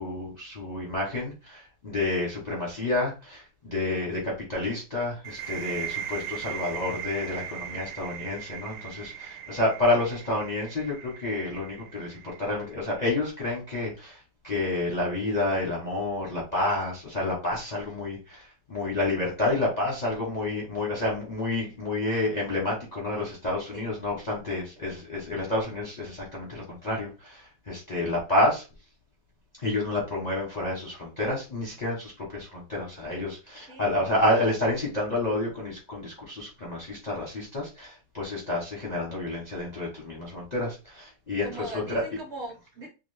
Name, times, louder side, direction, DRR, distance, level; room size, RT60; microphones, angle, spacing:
voice 1, 0.0-28.6 29.6-42.0, left 2 dB, 40° left, -3 dB, 0.6 m, -29 dB
sound 1, 5.2-12.8, right 10 dB, 90° right, 1.2 m, -39 dB
voice 2, 41.4-42.9, right 1 dB, 50° right, -1 dB, 1.0 m, -39 dB
2.9 x 2.4 x 3.1 m, 0.30 s
omnidirectional pair, 1.8 m